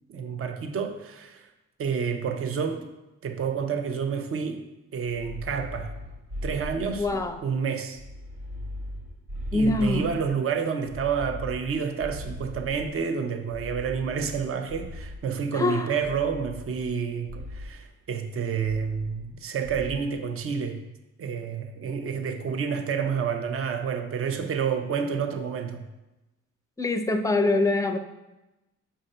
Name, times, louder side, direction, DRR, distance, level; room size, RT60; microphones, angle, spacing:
voice 1, 0.1-1.5 1.8-2.9 3.2-4.6 4.9-5.9 6.4-8.0 9.5-20.8 21.2-25.8, right 6 dB, 45° right, 6 dB, 0.7 m, -29 dB
sound 1, 5.0-7.5 7.9-10.4 10.8-13.0 13.5-15.4 16.0-17.0 17.3-17.8 18.6-19.4 19.6-20.1, equal, 75° right, 1.6 m, -39 dB
voice 2, 7.0-7.4 9.5-10.2 15.5-15.9 26.8-28.0, left 2 dB, 10° left, 7 dB, 0.5 m, -24 dB
6.5 x 2.7 x 5.4 m, 1.0 s
cardioid pair, 85°, 30 cm